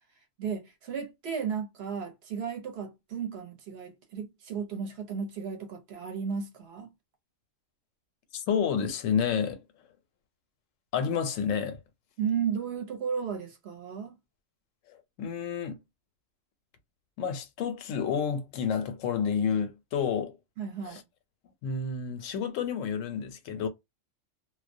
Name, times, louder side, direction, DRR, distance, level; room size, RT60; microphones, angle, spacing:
voice 1, 0.4-6.9 12.2-14.2 20.6-21.0, right 7 dB, 60° right, 0.8 m, -34 dB
voice 2, 8.3-9.6 10.9-11.8 14.9-15.8 17.2-20.3 20.9-21.0 21.6-23.7, left 7 dB, 80° left, 1.0 m, -30 dB
2.3 x 2.1 x 2.6 m
omnidirectional pair, 1.3 m